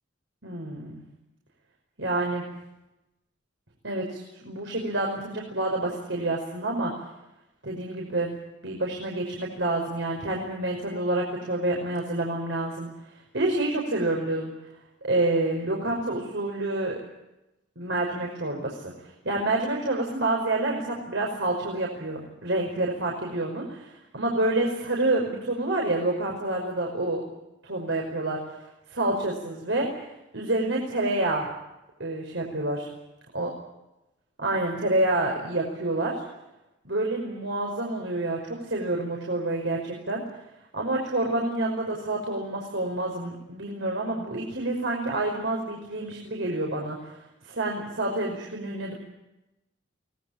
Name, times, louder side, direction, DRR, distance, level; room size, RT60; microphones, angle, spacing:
voice 1, 0.4-1.0 2.0-2.4 3.8-6.9 7.6-8.3 8.6-14.5 15.0-17.0 17.8-27.2 27.6-31.5 32.0-32.9 33.3-33.5 34.4-36.2 36.8-40.2 40.7-48.9, right 2 dB, 75° right, -1 dB, 5.5 m, -28 dB
23.5 x 20.0 x 8.8 m, 0.94 s
head